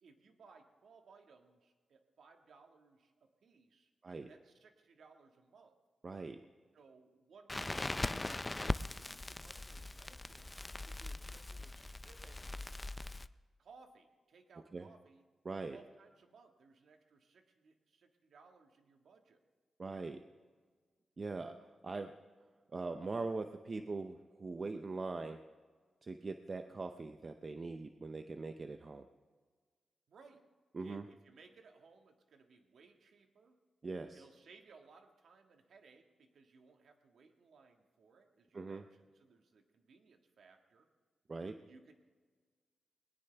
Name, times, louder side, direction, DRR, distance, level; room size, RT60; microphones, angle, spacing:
voice 1, 0.0-3.9 4.3-5.8 6.7-8.4 8.7-12.5 13.6-15.3 15.7-19.4 30.1-30.5 30.8-33.6 34.1-40.9 41.7-41.9, right 4 dB, 70° right, 4 dB, 1.8 m, -63 dB
voice 2, 6.0-6.4 14.7-14.9 15.4-15.8 19.8-20.2 21.2-22.2 22.7-25.4 26.0-29.1 30.7-31.0 33.8-34.2 38.5-38.8 41.3-41.6, right 3 dB, 35° right, 7 dB, 0.6 m, -42 dB
Crackle, 7.5-13.3, left 2 dB, 15° left, 0.4 m, -40 dB
20.5 x 19.5 x 3.4 m, 1.5 s
wide cardioid pair, 135°, 0 cm